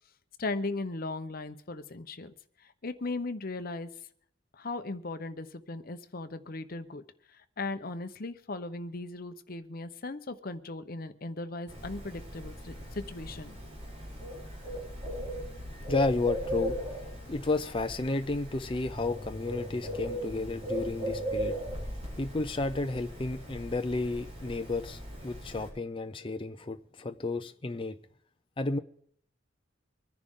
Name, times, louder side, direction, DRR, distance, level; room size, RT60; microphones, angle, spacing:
voice 1, 0.4-2.3 2.6-3.9 4.5-7.0 7.3-13.5, left 2 dB, 50° left, 10 dB, 0.9 m, -37 dB
Bird, 11.7-25.7, equal, 35° right, 6.8 m, -38 dB
voice 2, 15.9-16.8 17.3-21.5 22.2-27.9 28.6-28.8, left 2 dB, 25° left, 7 dB, 0.6 m, -32 dB
25.0 x 10.5 x 3.7 m, 0.65 s
head